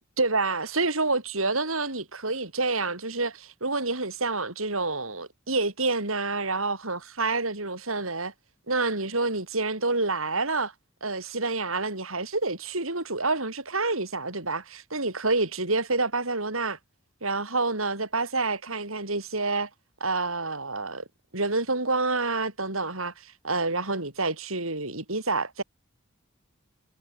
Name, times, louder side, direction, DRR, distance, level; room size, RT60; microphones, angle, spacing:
voice 1, 0.2-8.3 8.7-10.7 11.0-16.8 17.2-19.7 20.0-21.0 21.3-25.6, right 3 dB, 80° right, 8.0 m, -28 dB
head